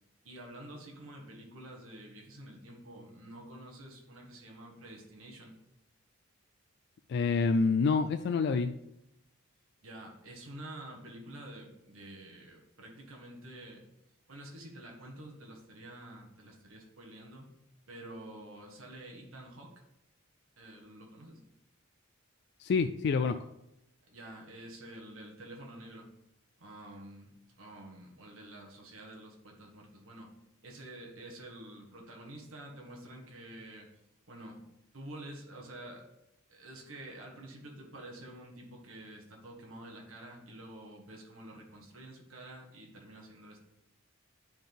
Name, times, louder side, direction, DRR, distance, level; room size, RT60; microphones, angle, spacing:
voice 1, 0.2-5.6 9.8-13.8 14.3-17.5 17.9-19.7 20.6-21.4 24.1-26.1 26.6-30.3 30.6-33.9 34.3-34.6 34.9-36.0 36.5-43.6, right 1 dB, 80° right, 0 dB, 1.5 m, -48 dB
voice 2, 7.1-8.7 22.6-23.4, left 4 dB, 55° left, 8 dB, 0.3 m, -27 dB
10.0 x 3.9 x 3.5 m, 0.85 s
head